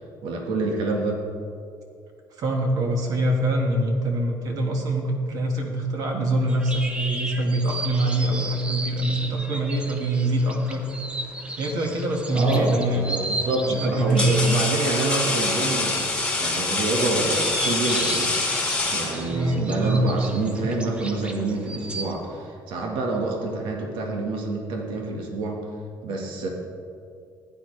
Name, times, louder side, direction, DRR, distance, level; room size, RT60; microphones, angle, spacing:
voice 1, 0.2-1.2 12.3-16.0 16.4-18.4 18.9-25.6 26.0-26.5, right 2 dB, 90° right, 0 dB, 1.6 m, -27 dB
voice 2, 2.4-10.8 11.6-13.1 13.6-14.7 19.3-20.1 20.6-20.7, right 1 dB, 50° right, 1 dB, 1.8 m, -24 dB
sound 1, 6.4-22.1, right 2 dB, 15° right, 0.7 m, -35 dB
sound 2, 12.5-12.8 13.6-19.6, left 3 dB, 15° left, 1.5 m, -26 dB
15.0 x 9.8 x 3.3 m, 2.4 s
cardioid pair, 155°, 8 cm